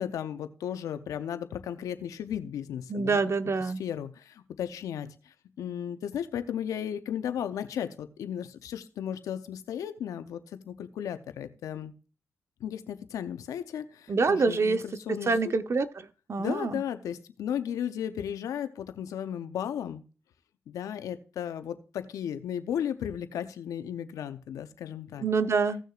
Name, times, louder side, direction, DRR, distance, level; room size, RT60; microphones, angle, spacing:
voice 1, 0.0-3.2 3.6-11.9 12.6-15.4 16.4-20.0 20.7-25.2, left 9 dB, 90° left, 10 dB, 0.7 m, -35 dB
voice 2, 2.9-3.8 14.1-14.8 15.3-15.9 16.3-16.7 25.2-25.8, right 4 dB, 55° right, 10 dB, 0.9 m, -26 dB
16.5 x 6.4 x 2.5 m, 0.35 s
supercardioid pair, 45°, 6 cm